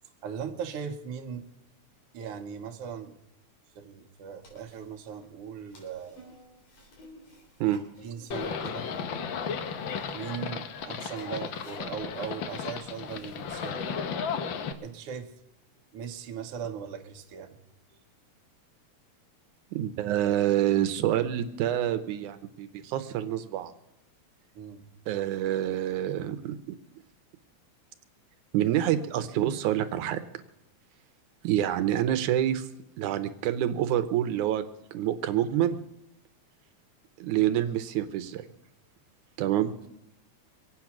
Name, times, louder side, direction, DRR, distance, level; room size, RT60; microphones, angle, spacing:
voice 1, 0.2-1.5 2.1-3.1 3.8-6.3 8.0-8.9 10.1-14.1 14.8-15.3 15.9-17.6 24.5-24.8, right 7 dB, 60° right, 5 dB, 1.9 m, -39 dB
sound 1, 4.4-14.6, left 1 dB, 90° left, 4.8 m, -56 dB
Livestock farm animals working animals, 8.3-14.7, left 6 dB, 75° left, 1.1 m, -34 dB
voice 2, 19.7-23.7 25.1-26.6 28.5-30.2 31.4-32.7 33.0-34.6 34.9-35.8 37.2-38.5 39.4-39.7, right 11 dB, 80° right, 10 dB, 2.2 m, -27 dB
24.0 x 8.6 x 5.9 m, 0.87 s
omnidirectional pair, 3.4 m